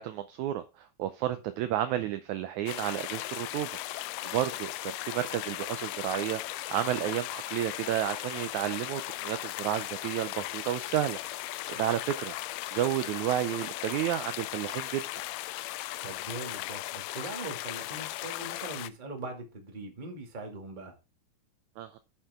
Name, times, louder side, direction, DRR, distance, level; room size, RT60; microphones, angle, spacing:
voice 1, 0.0-3.7 4.2-12.3 12.7-15.0 21.8-22.0, right 12 dB, 75° right, 11 dB, 1.8 m, -31 dB
sound 1, 2.7-18.9, left 16 dB, 85° left, 2.1 m, -37 dB
voice 2, 16.0-20.9, right 2 dB, 20° right, 2 dB, 1.6 m, -41 dB
8.9 x 7.2 x 3.6 m, 0.29 s
omnidirectional pair, 3.9 m